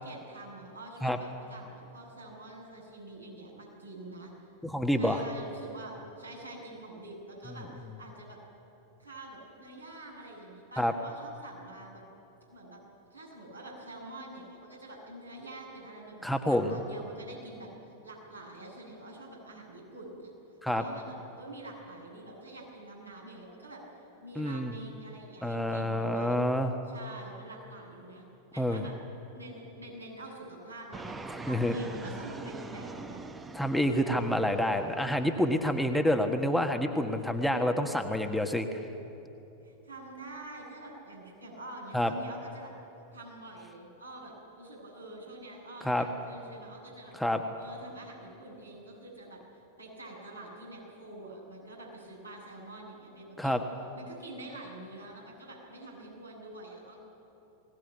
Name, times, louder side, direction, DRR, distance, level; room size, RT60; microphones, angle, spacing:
voice 1, 0.0-4.3 5.0-8.4 9.0-12.0 12.5-12.8 13.1-17.7 18.0-20.3 20.7-23.8 24.2-26.4 26.9-28.3 28.5-28.9 29.3-33.2 39.6-42.7 43.1-47.2 47.6-49.4 49.8-53.6 53.9-57.0, right 1 dB, 85° right, -3 dB, 7.7 m, -46 dB
voice 2, 4.6-5.2 10.8-10.9 16.2-16.7 20.6-20.8 24.4-24.7 25.4-26.7 28.6-28.9 31.5-31.7 33.5-38.7 41.9-42.1 45.8-46.1 47.1-47.4 53.4-53.6, left 1 dB, ahead, 5 dB, 1.5 m, -28 dB
Fixed-wing aircraft airplane, 30.9-36.3, right 3 dB, 15° right, 1.2 m, -44 dB
21.0 x 18.5 x 9.4 m, 2.9 s
figure-of-eight pair, 90°, 0 cm